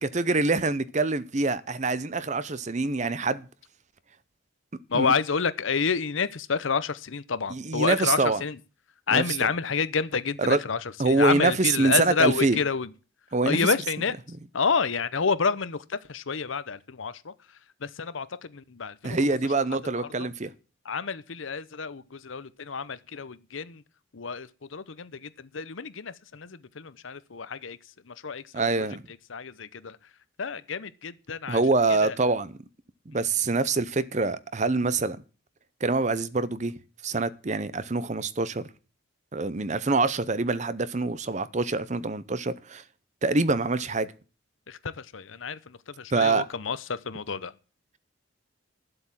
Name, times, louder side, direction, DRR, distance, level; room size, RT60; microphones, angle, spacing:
voice 1, 0.0-3.5 4.9-5.1 7.5-8.4 9.1-9.5 10.4-10.6 11.0-12.6 13.3-13.7 19.0-20.5 28.5-29.0 31.5-32.6 33.1-35.2 35.8-36.7 37.0-38.7 39.3-42.8 43.2-44.1 46.1-46.5, right 3 dB, 35° right, 0.7 m, -25 dB
voice 2, 4.9-8.6 9.1-10.8 11.0-12.9 13.4-14.1 14.5-15.8 16.1-17.3 17.8-18.3 18.5-19.2 20.0-20.1 20.9-23.8 24.1-27.8 28.1-28.9 29.3-30.0 30.4-31.6 32.0-32.1 44.7-47.5, left 5 dB, 80° left, 0.8 m, -29 dB
12.5 x 7.9 x 7.4 m
head